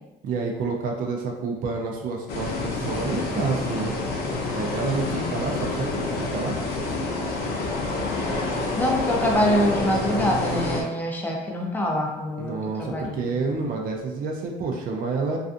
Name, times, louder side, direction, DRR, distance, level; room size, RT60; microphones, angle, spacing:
voice 1, 0.2-3.9 4.6-6.6 12.4-15.4, right 4 dB, 55° right, 0 dB, 0.5 m, -28 dB
sound 1, 2.3-10.8, left 2 dB, 65° left, 0.6 m, -28 dB
voice 2, 8.8-13.3, equal, 10° left, -1 dB, 0.5 m, -25 dB
2.5 x 2.3 x 2.4 m, 0.95 s
cardioid pair, 110°, 17 cm